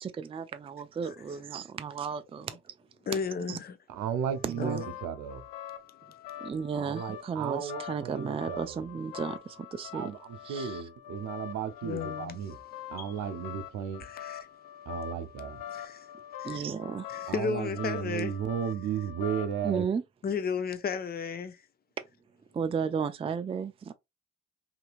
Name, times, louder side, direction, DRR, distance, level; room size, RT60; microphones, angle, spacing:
voice 1, 0.0-2.7 3.5-3.6 4.4-4.8 6.4-10.1 10.5-10.8 16.4-17.1 19.6-20.0 22.5-23.9, right 6 dB, 20° right, 0.3 m, -34 dB
voice 2, 3.1-3.8 4.6-4.9 11.8-12.3 13.0-13.1 14.0-14.4 15.7-16.1 16.4-16.6 17.1-18.3 20.2-21.6, left 5 dB, 30° left, 0.6 m, -33 dB
voice 3, 3.9-5.4 6.7-8.8 9.9-12.6 12.9-14.1 14.9-15.6 17.3-19.9, right 8 dB, 75° right, 0.6 m, -34 dB
sound 1, 4.3-19.7, left 10 dB, 90° left, 0.5 m, -44 dB
2.8 x 2.8 x 2.4 m
hypercardioid pair, 50°, 30 cm